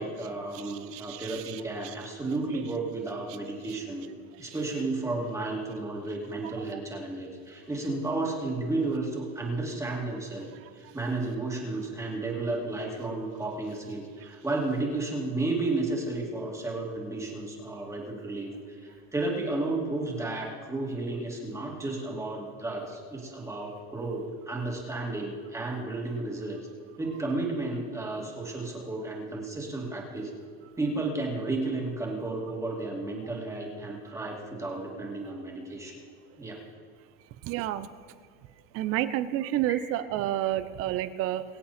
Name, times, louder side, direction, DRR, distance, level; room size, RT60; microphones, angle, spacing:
voice 1, 0.0-4.1 4.4-10.5 10.7-26.6 27.0-30.3 30.8-36.0 36.4-36.6, right 2 dB, 10° right, -2 dB, 2.4 m, -32 dB
voice 2, 0.9-1.6 37.4-37.9 38.7-41.4, right 13 dB, 50° right, 13 dB, 0.8 m, -29 dB
23.0 x 8.5 x 4.3 m, 2.1 s
cardioid pair, 150°, 30 cm